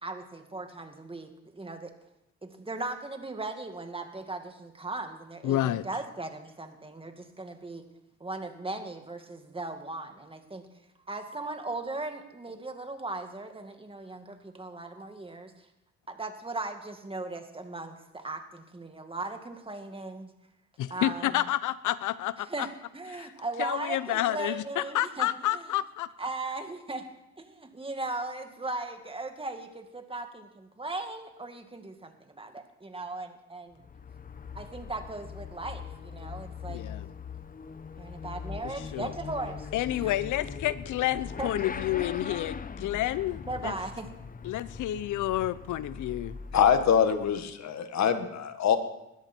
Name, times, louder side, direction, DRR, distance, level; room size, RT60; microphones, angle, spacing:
voice 1, 0.0-1.9 2.4-7.9 8.2-10.7 11.1-15.7 16.1-20.3 20.9-21.4 22.4-22.7 22.9-25.7 26.2-27.1 27.4-33.8 34.5-36.8 38.0-40.0 41.4-41.5 42.3-42.4 43.5-44.1, right 2 dB, 20° right, 6 dB, 2.2 m, -38 dB
voice 2, 5.4-5.9 20.8-22.7 23.1-23.3 23.6-26.1 36.7-37.1 38.9-39.1 39.7-43.7 44.4-46.4, left 14 dB, 80° left, 16 dB, 0.8 m, -30 dB
Motorcycle / Accelerating revving vroom, 33.7-47.6, left 6 dB, 30° left, 0.9 m, -41 dB
voice 3, 46.5-48.8, left 8 dB, 65° left, 9 dB, 1.7 m, -24 dB
21.0 x 13.5 x 4.5 m, 0.88 s
cardioid pair, 90°, 30 cm